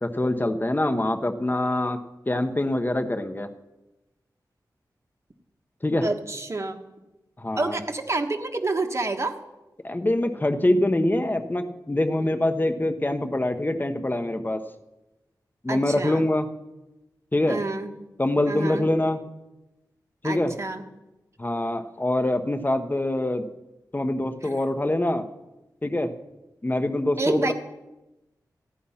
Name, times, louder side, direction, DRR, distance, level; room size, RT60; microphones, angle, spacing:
voice 1, 0.0-2.0 2.3-3.5 5.8-6.1 7.4-7.8 9.8-14.6 15.6-16.5 17.3-17.6 18.2-19.2 20.2-20.5 21.4-23.5 23.9-25.2 25.8-26.1 26.6-27.5, left 1 dB, 25° left, 8 dB, 1.1 m, -24 dB
voice 2, 6.0-6.8 7.5-9.4 15.7-16.2 17.5-17.9 18.5-18.9 20.2-20.8 27.2-27.5, right 2 dB, 40° right, 4 dB, 1.4 m, -28 dB
15.0 x 10.0 x 5.7 m, 0.99 s
wide cardioid pair, 70°, 7 cm